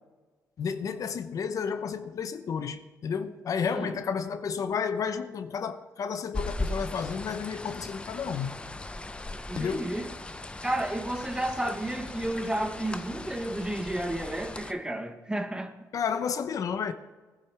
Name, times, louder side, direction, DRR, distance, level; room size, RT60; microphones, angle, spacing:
voice 1, 0.6-8.6 9.5-9.9 15.9-16.9, left 6 dB, 55° left, 0.8 m, -31 dB
voice 2, 3.7-4.0 9.5-10.1 10.6-15.7, right 1 dB, 10° right, 1.2 m, -32 dB
sound 1, 6.3-14.7, left 2 dB, 15° left, 0.7 m, -38 dB
19.0 x 10.5 x 3.4 m
cardioid pair, 95°, 7 cm